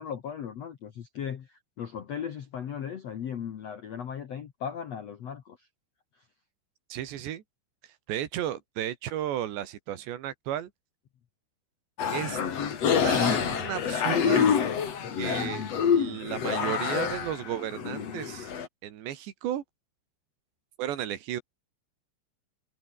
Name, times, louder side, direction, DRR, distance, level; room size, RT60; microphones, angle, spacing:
voice 1, 0.0-5.7, left 8 dB, 65° left, 1.7 m, -37 dB
voice 2, 6.9-7.4 8.1-10.7 12.1-12.4 13.0-14.5 15.2-18.5 18.8-19.6 20.8-21.4, right 11 dB, 75° right, 4.0 m, -34 dB
sound 1, 12.0-18.7, left 7 dB, 40° left, 2.8 m, -27 dB
omnidirectional pair, 5.2 m